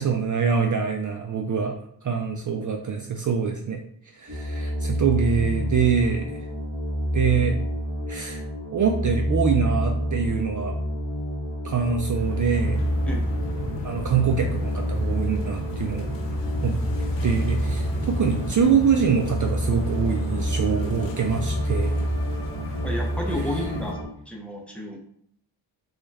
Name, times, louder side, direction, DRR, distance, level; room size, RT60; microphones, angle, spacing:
voice 1, 0.0-1.8 2.0-3.8 4.2-6.4 7.1-7.5 8.1-8.4 8.7-10.8 11.6-12.8 13.8-16.2 16.6-16.8 17.2-22.0 23.3-23.6, right 6 dB, 45° right, 3 dB, 0.4 m, -24 dB
sound 1, 4.3-24.0, equal, 25° right, 1.4 m, -28 dB
sound 2, 12.1-23.9, left 1 dB, 80° left, 1.0 m, -34 dB
voice 2, 22.8-24.0 24.3-25.0, equal, 5° left, 0 dB, 0.8 m, -31 dB
3.8 x 2.4 x 3.2 m, 0.67 s
cardioid pair, 70°, 45 cm